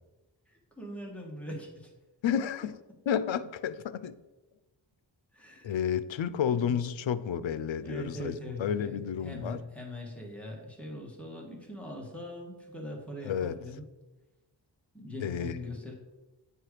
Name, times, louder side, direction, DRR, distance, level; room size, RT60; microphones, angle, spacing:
voice 1, 0.5-1.9 5.3-5.8 6.5-6.8 7.8-13.8 14.9-15.9, left 1 dB, 5° left, -2 dB, 1.9 m, -41 dB
voice 2, 2.2-2.8 3.1-4.1 5.6-8.3 8.6-9.6 13.2-13.6 15.2-15.6, left 8 dB, 90° left, 15 dB, 0.5 m, -31 dB
9.2 x 4.7 x 4.9 m, 1.1 s
wide cardioid pair, 110°, 45 cm